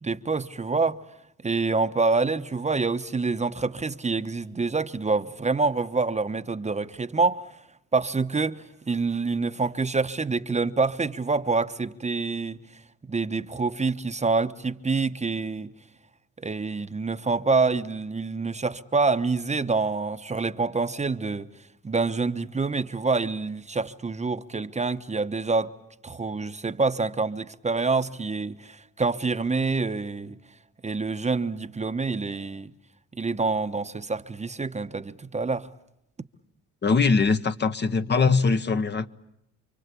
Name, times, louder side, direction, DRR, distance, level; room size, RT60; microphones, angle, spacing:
voice 1, 0.0-1.0 1.4-7.4 7.9-12.6 13.1-15.7 16.4-21.5 21.8-25.7 26.0-30.4 30.8-32.7 33.2-35.7, right 4 dB, 25° right, 1.0 m, -26 dB
voice 2, 36.8-39.1, left 4 dB, 35° left, 1.1 m, -22 dB
29.0 x 24.0 x 8.4 m
cardioid pair, 90°, 30 cm